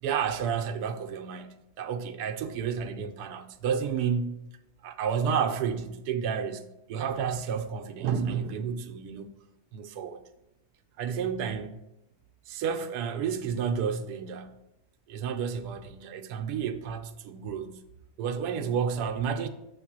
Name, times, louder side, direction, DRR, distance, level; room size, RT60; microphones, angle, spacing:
voice 1, 0.0-4.5 4.8-9.3 9.7-10.2 11.0-11.8 12.5-14.5 15.1-17.8 18.2-19.5, right 7 dB, 85° right, 1.1 m, -31 dB
6.5 x 3.7 x 6.0 m
omnidirectional pair, 1.7 m